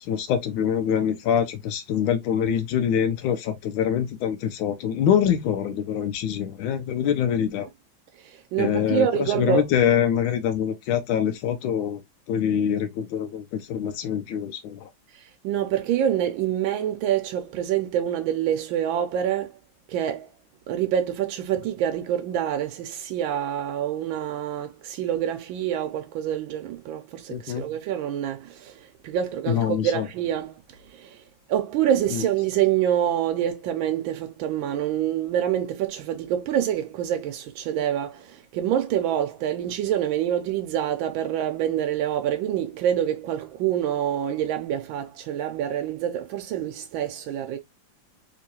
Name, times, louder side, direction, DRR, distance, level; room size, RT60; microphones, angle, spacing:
voice 1, 0.0-7.7 8.6-12.0 12.3-14.9 27.3-27.6 29.5-30.1 32.1-32.2, left 8 dB, 85° left, 1.4 m, -24 dB
voice 2, 8.1-9.7 15.1-19.6 19.9-20.3 20.7-47.6, right 10 dB, 90° right, 1.4 m, -26 dB
3.6 x 2.9 x 2.7 m
omnidirectional pair, 2.1 m